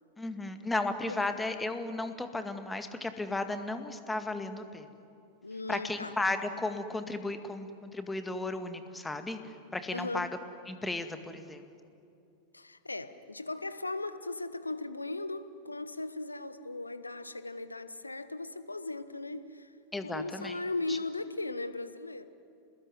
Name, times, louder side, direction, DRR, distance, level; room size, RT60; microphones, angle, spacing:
voice 1, 0.2-4.9 5.7-10.3 10.7-11.6 19.9-20.6 20.9-21.0, left 2 dB, 10° left, 1.9 m, -34 dB
voice 2, 5.4-6.1 9.9-10.3 12.5-19.7 20.0-22.3, left 2 dB, 80° left, 1.1 m, -37 dB
28.0 x 20.0 x 10.0 m
figure-of-eight pair, 90°, 0 cm